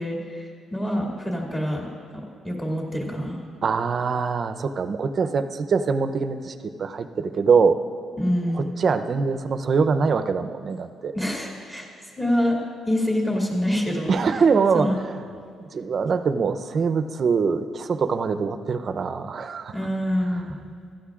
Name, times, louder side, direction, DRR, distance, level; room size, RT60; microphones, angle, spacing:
voice 1, 0.0-1.9 2.1-3.4 8.2-8.7 11.1-11.9 12.2-12.6 12.9-14.1 14.7-15.0 19.7-20.6, equal, 15° left, -2 dB, 2.3 m, -26 dB
voice 2, 3.6-7.8 8.5-11.1 14.1-14.9 15.7-19.7, right 5 dB, 50° right, 10 dB, 0.6 m, -23 dB
16.0 x 13.0 x 2.5 m, 2.5 s
cardioid pair, 90°, 0 cm